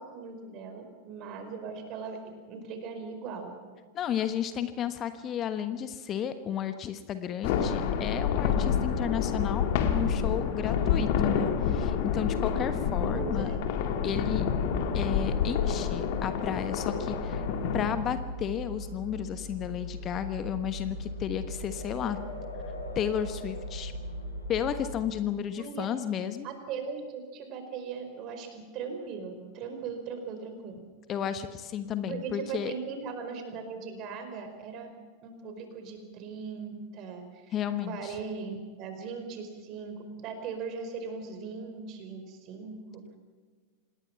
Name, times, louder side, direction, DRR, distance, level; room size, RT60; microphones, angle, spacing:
voice 1, 0.0-2.2 2.5-3.6 10.6-10.8 13.1-13.6 25.6-25.9 26.4-30.8 32.1-34.9 35.2-37.5 37.9-43.0, right 5 dB, 40° right, 6 dB, 4.8 m, -39 dB
voice 2, 3.9-13.5 14.0-14.4 14.9-17.5 17.7-22.2 22.9-23.9 24.5-26.5 31.1-32.7 37.5-38.2, left 9 dB, 30° left, 11 dB, 1.3 m, -33 dB
sound 1, 7.4-17.9, left 7 dB, 50° left, 2.3 m, -28 dB
sound 2, 14.1-25.0, left 1 dB, 80° left, 4.3 m, -38 dB
27.0 x 19.5 x 5.9 m, 1.5 s
figure-of-eight pair, 90°, 0 cm